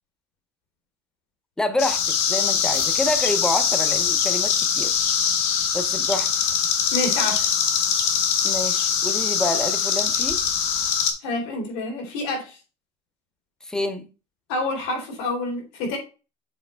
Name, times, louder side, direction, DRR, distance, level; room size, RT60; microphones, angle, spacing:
voice 1, 1.6-4.9 5.7-6.3 8.4-10.4 13.6-14.1, left 1 dB, 5° left, 0.6 m, -27 dB
sound 1, 1.8-11.1, left 7 dB, 55° left, 1.1 m, -22 dB
voice 2, 6.9-7.5 11.2-12.6 14.5-16.0, left 2 dB, 80° left, 3.1 m, -28 dB
7.2 x 4.2 x 3.3 m
cardioid pair, 180°, 13 cm